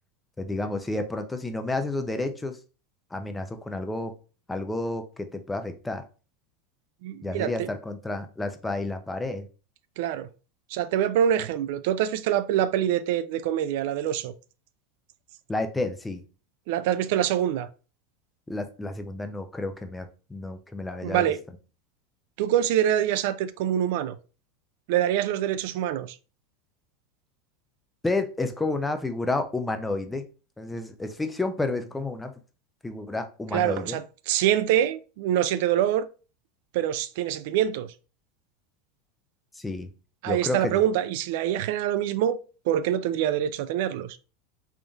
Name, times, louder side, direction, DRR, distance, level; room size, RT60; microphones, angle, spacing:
voice 1, 0.4-2.6 3.1-4.1 4.5-6.0 7.2-9.5 15.5-16.2 18.5-21.3 28.0-30.3 30.6-32.3 32.8-34.0 39.5-39.9 40.3-40.8, left 2 dB, 10° left, 0.6 m, -30 dB
voice 2, 7.0-7.7 10.0-10.3 10.7-14.3 16.7-17.7 21.0-21.4 22.4-24.2 24.9-26.2 33.5-36.1 36.7-37.9 40.2-42.4 42.7-44.2, right 11 dB, 70° right, 0.3 m, -25 dB
3.5 x 2.6 x 3.5 m
supercardioid pair, 115°, 0 cm